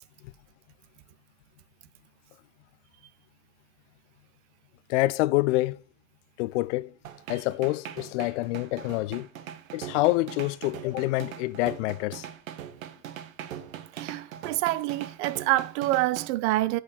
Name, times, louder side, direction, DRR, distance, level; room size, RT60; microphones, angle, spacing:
voice 1, 4.9-5.8 6.4-6.9 7.3-9.3 9.7-12.3, left 19 dB, 60° left, 0.5 m, -27 dB
sound 1, 7.0-16.3, right 10 dB, 70° right, 1.0 m, -41 dB
voice 2, 13.9-16.8, right 17 dB, 55° right, 0.6 m, -27 dB
8.3 x 4.7 x 6.3 m
figure-of-eight pair, 65°, 42 cm